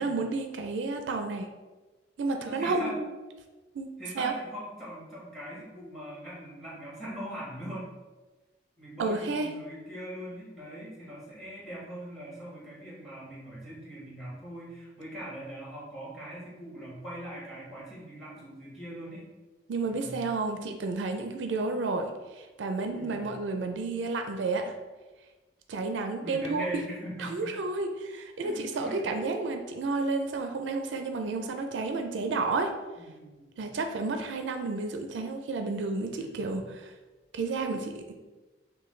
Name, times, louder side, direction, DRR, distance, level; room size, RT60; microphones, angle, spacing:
voice 1, 0.0-1.5 2.2-3.1 3.7-3.9 4.1-4.3 9.0-9.5 19.7-22.1 22.4-24.7 25.7-26.6 27.2-32.7 33.6-36.9 37.3-38.1, right 3 dB, 80° right, 5 dB, 0.4 m, -31 dB
voice 2, 2.4-3.0 4.0-7.9 8.8-19.3 19.8-20.2 22.9-23.3 26.2-27.5 28.4-29.1 33.0-33.6 36.2-36.6, right 1 dB, ahead, -7 dB, 1.4 m, -41 dB
5.4 x 2.2 x 3.2 m, 1.2 s
head